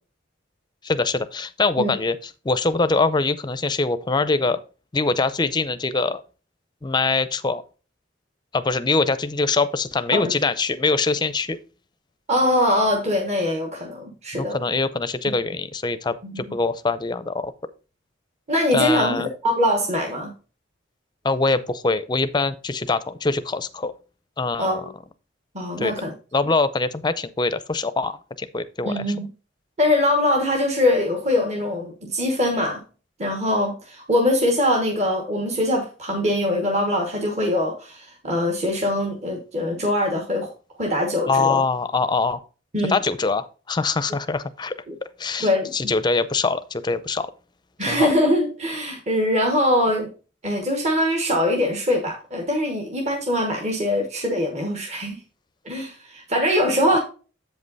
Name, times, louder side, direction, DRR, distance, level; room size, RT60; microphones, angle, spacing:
voice 1, 0.8-4.6 4.9-6.2 6.8-7.6 8.5-11.6 14.3-17.5 18.7-19.3 21.2-23.9 24.4-24.8 25.8-25.9 26.3-29.1 41.3-42.4 42.9-44.7 45.2-47.3 47.9-48.1 56.9-57.0, left 3 dB, 25° left, 0.5 m, -23 dB
voice 2, 12.3-14.6 16.2-16.4 18.5-20.3 24.6-24.9 25.5-26.1 28.8-29.3 29.8-32.8 33.2-40.5 40.8-41.6 42.7-43.0 44.9-45.0 45.4-45.7 47.8-50.1 50.4-55.2 55.6-57.0, left 1 dB, 35° right, 1.3 m, -22 dB
7.7 x 5.3 x 4.0 m
head